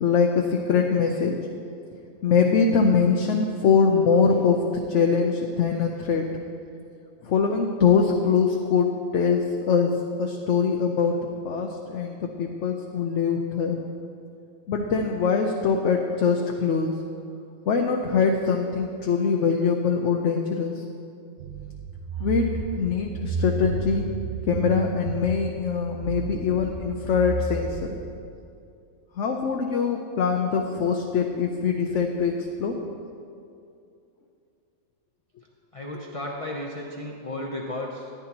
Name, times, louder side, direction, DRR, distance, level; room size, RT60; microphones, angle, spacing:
voice 1, 0.0-1.4 2.2-6.3 7.2-11.2 11.4-13.8 14.7-16.9 17.7-20.8 22.2-22.5 22.8-24.1 24.5-28.0 29.2-32.8, left 5 dB, 65° left, 2 dB, 0.9 m, -23 dB
sound 1, 21.4-28.3, right 5 dB, 70° right, 1.0 m, -32 dB
voice 2, 35.7-38.1, left 1 dB, 30° left, -1 dB, 0.7 m, -34 dB
14.5 x 10.5 x 2.9 m, 2.5 s
omnidirectional pair, 1.4 m